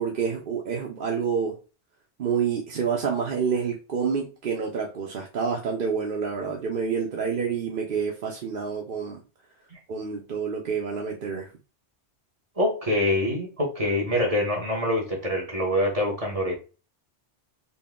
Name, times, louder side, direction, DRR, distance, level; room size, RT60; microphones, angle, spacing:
voice 1, 0.0-1.6 2.2-9.2 9.9-11.5, right 6 dB, 55° right, -1 dB, 0.8 m, -28 dB
voice 2, 12.6-16.5, left 1 dB, 30° right, -2 dB, 1.2 m, -25 dB
3.9 x 2.2 x 3.7 m, 0.33 s
omnidirectional pair, 1.2 m